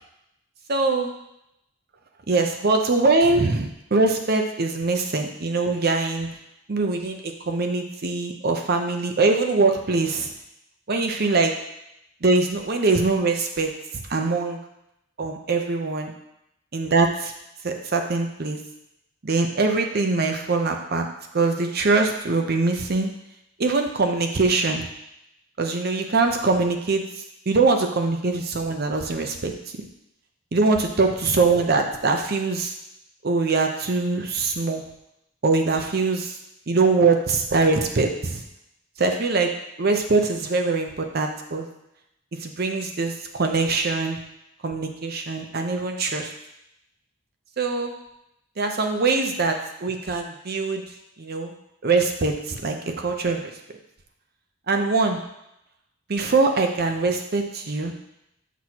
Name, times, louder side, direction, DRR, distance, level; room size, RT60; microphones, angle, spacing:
voice 1, 0.7-1.1 2.3-6.3 6.7-10.3 10.9-11.5 12.2-14.6 15.2-16.1 16.7-17.3 17.6-18.6 19.2-21.1 21.3-23.1 23.6-24.9 25.6-29.5 30.5-32.7 33.2-34.8 35.4-36.4 36.7-38.4 39.0-39.5 39.8-41.7 42.4-44.2 44.6-46.3 47.6-47.9 48.6-50.8 51.2-51.5 51.8-53.5 54.7-55.2 56.1-57.9, right 3 dB, 50° right, 4 dB, 0.7 m, -23 dB
6.2 x 6.1 x 2.9 m, 0.83 s
head